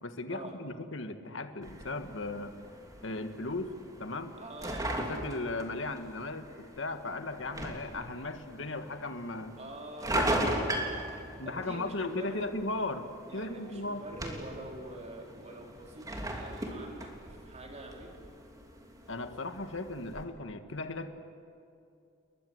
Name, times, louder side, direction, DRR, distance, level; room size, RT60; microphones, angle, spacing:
voice 1, 0.0-2.5 3.0-3.7 4.0-4.3 5.0-9.6 10.1-10.3 11.4-13.1 13.3-14.0 19.1-21.1, left 2 dB, 65° left, 8 dB, 1.7 m, -37 dB
sound 1, 1.6-20.2, right 1 dB, 15° right, 3.2 m, -39 dB
voice 2, 4.4-5.0 9.6-10.4 11.4-12.5 13.3-18.2, right 1 dB, 35° right, 1 dB, 4.4 m, -45 dB
30.0 x 22.0 x 8.0 m, 2.6 s
head